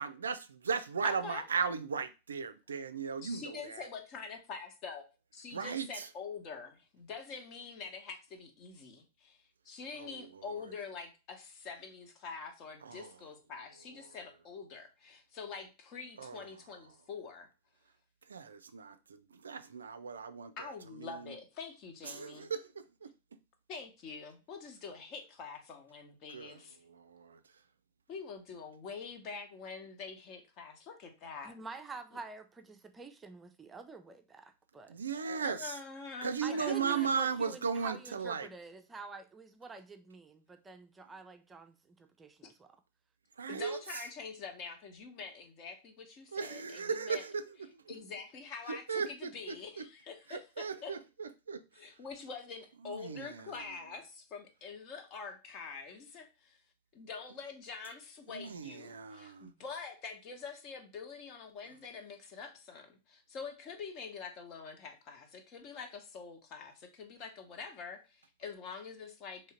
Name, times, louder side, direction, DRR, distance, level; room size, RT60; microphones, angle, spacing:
voice 1, 0.0-3.8 5.5-6.1 10.0-10.2 12.9-13.1 16.2-16.4 18.3-19.0 19.3-20.5 21.0-21.3 22.1-23.1 26.3-26.6 26.9-27.4 34.9-35.7 36.2-38.5 43.4-43.8 46.3-47.4 47.9-48.0 48.7-49.8 50.3-51.6 52.8-53.5 58.3-59.5, right 6 dB, 70° right, 0.4 m, -36 dB
voice 2, 1.0-1.5 3.2-5.0 5.3-17.5 20.6-22.5 23.7-26.8 28.1-31.5 35.3-37.1 43.5-47.3 47.9-50.9 51.7-56.6 56.9-69.4, left 5 dB, 40° left, 1.0 m, -45 dB
voice 3, 31.4-34.9 36.4-42.8, right 4 dB, 15° right, 0.6 m, -47 dB
3.7 x 3.1 x 4.3 m
figure-of-eight pair, 90°, 0 cm